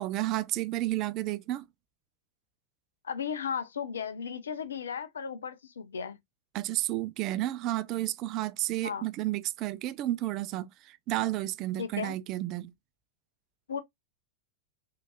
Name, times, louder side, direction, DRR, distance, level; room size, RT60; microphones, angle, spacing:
voice 1, 0.0-1.6 6.5-12.7, right 15 dB, 40° right, 0.3 m, -31 dB
voice 2, 3.0-6.2 8.8-9.1 11.8-12.2 13.7-13.8, left 7 dB, 70° left, 0.5 m, -35 dB
3.6 x 2.8 x 2.4 m
figure-of-eight pair, 90°, 0 cm